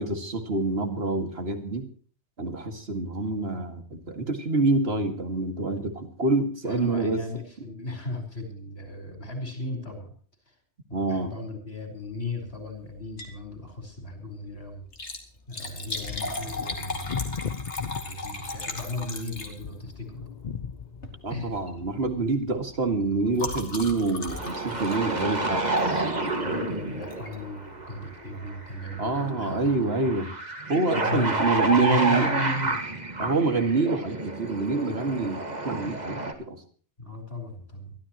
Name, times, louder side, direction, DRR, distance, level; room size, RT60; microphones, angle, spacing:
voice 1, 0.0-1.9 2.4-7.2 10.9-11.3 21.2-25.6 29.0-30.3 30.7-32.4 33.2-36.6, right 3 dB, 65° right, 6 dB, 2.4 m, -26 dB
voice 2, 6.6-10.1 10.5-10.6 10.9-14.8 15.5-17.3 17.9-20.3 21.3-21.5 26.1-30.0 30.9-32.9 37.0-38.0, left 2 dB, 65° left, 5 dB, 5.0 m, -36 dB
Liquid, 13.0-13.4 13.8-13.9 14.8-19.9 20.9-21.2 21.5-21.8 22.1-26.2 27.1-27.4 27.9-28.0 28.2-28.3, left 3 dB, 85° left, 2.7 m, -37 dB
sound 1, 15.9-22.2, left 6 dB, 45° left, 0.8 m, -38 dB
sound 2, 24.3-36.3, right 2 dB, 40° right, 2.1 m, -30 dB
23.0 x 13.5 x 3.0 m, 0.42 s
omnidirectional pair, 1.2 m